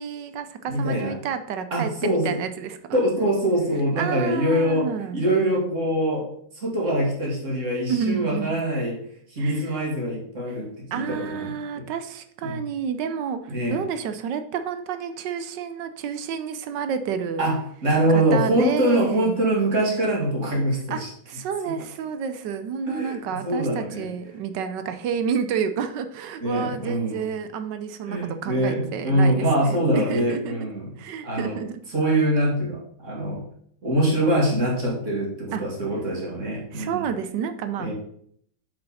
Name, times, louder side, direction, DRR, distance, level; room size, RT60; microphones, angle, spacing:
voice 1, 0.0-3.0 4.0-5.2 7.9-8.5 9.4-9.8 10.9-17.5 18.1-19.4 20.9-21.0 21.3-30.6 31.0-31.7 35.5-35.6 36.7-37.9, right 7 dB, 70° right, 9 dB, 1.2 m, -30 dB
voice 2, 0.7-1.2 1.7-2.4 2.9-6.3 6.5-9.0 9.3-11.5 11.8-11.9 12.4-12.6 13.5-13.8 17.4-21.1 21.7-21.8 22.9-23.2 23.4-24.1 26.4-27.2 28.1-30.9 31.2-31.6 31.9-33.4 33.8-37.1 37.8-37.9, right 1 dB, 40° right, -3 dB, 2.6 m, -24 dB
7.1 x 6.4 x 4.2 m, 0.65 s
omnidirectional pair, 2.1 m